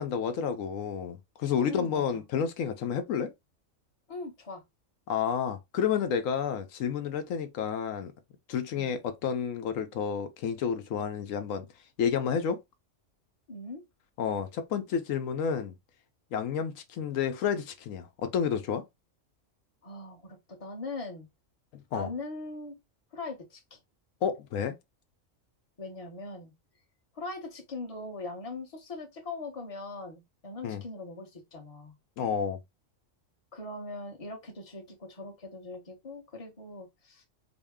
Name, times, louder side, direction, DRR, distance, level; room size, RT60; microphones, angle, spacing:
voice 1, 0.0-3.3 5.1-8.1 8.5-11.7 12.0-12.6 14.2-15.7 16.3-18.8 21.7-22.1 24.2-24.8 30.6-30.8 32.2-32.6, left 7 dB, 85° left, 1.0 m, -30 dB
voice 2, 1.6-2.2 4.1-4.6 8.7-8.9 13.5-13.8 19.8-21.3 21.9-22.8 23.1-23.8 25.8-26.5 27.1-31.9 33.5-37.2, left 3 dB, 30° left, 1.0 m, -41 dB
3.9 x 2.1 x 3.5 m
omnidirectional pair, 1.3 m